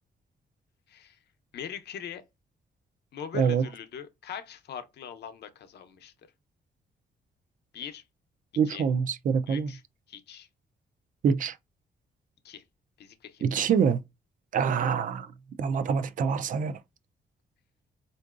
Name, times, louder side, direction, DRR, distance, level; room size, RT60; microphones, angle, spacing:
voice 1, 0.9-1.2 1.5-2.2 3.1-6.1 7.7-8.0 8.7-8.8 9.5-9.8 10.1-10.5 12.4-12.6 13.0-13.8 14.6-14.7, left 8 dB, 75° left, 0.7 m, -41 dB
voice 2, 8.6-9.7 11.2-11.6 13.4-14.0 14.5-15.3 15.6-16.8, right 6 dB, 50° right, 0.4 m, -25 dB
4.5 x 2.6 x 2.4 m
wide cardioid pair, 155°, 17 cm